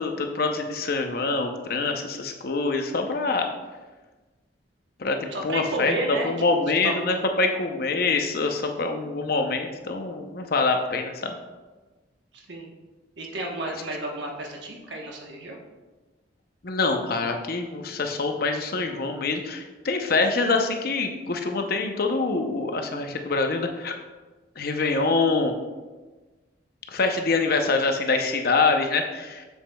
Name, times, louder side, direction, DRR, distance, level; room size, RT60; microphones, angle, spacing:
voice 1, 0.0-3.5 5.0-5.9 6.2-11.4 16.6-23.9 24.6-25.5 26.9-29.5, left 3 dB, 55° left, 4 dB, 0.7 m, -25 dB
voice 2, 5.3-7.2 12.3-12.7 13.2-15.6, right 2 dB, 75° right, 0 dB, 1.1 m, -32 dB
7.2 x 7.2 x 2.3 m, 1.2 s
head